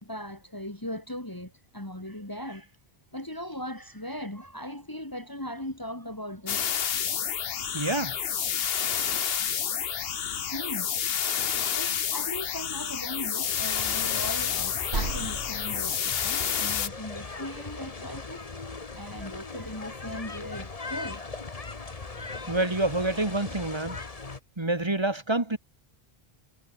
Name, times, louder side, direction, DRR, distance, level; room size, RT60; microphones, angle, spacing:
voice 1, 0.0-2.7 3.1-6.8 10.5-10.9 11.3-18.4 18.9-21.2, left 1 dB, 20° left, 3.2 m, -38 dB
sound 1, 6.5-16.9, left 8 dB, 65° left, 1.1 m, -29 dB
voice 2, 7.7-8.2 22.5-24.0 24.6-25.6, right 2 dB, 25° right, 1.8 m, -27 dB
sound 2, 13.4-24.4, left 3 dB, 35° left, 1.5 m, -39 dB
sound 3, 14.5-16.6, right 3 dB, 90° right, 3.7 m, -36 dB
omnidirectional pair, 1.1 m